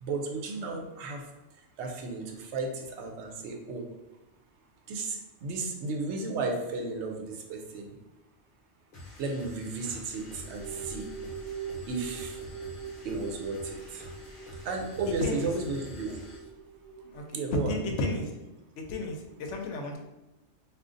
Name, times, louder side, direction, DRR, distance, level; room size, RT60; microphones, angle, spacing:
voice 1, 0.0-1.2 1.8-3.8 4.9-7.9 9.2-11.1 11.9-12.4 13.0-14.0 14.6-16.2 17.3-17.8, right 3 dB, 75° right, 3 dB, 0.9 m, -34 dB
sound 1, 8.9-16.5, left 1 dB, 50° left, 0.9 m, -47 dB
sound 2, 10.0-17.6, right 6 dB, 35° right, 0.8 m, -43 dB
voice 2, 17.7-18.3 18.9-19.2 19.5-20.0, left 1 dB, 80° left, 3 dB, 0.9 m, -32 dB
2.5 x 2.4 x 3.6 m, 1.0 s
omnidirectional pair, 1.2 m